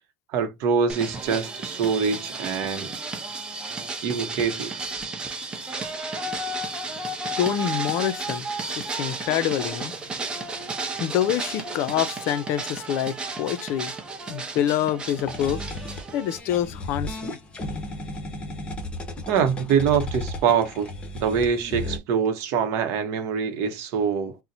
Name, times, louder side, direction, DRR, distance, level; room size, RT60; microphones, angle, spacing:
voice 1, 0.3-2.9 4.0-4.8 19.3-24.4, right 6 dB, 60° right, 0.7 m, -24 dB
sound 1, 0.9-16.4, right 3 dB, 20° right, 0.6 m, -33 dB
voice 2, 7.4-8.5 8.8-9.9 11.0-13.9 14.3-15.6 16.1-17.3, left 11 dB, 60° left, 0.4 m, -26 dB
sound 2, 15.1-22.0, left 1 dB, 20° left, 0.8 m, -34 dB
4.0 x 2.1 x 2.6 m
cardioid pair, 145°, 5 cm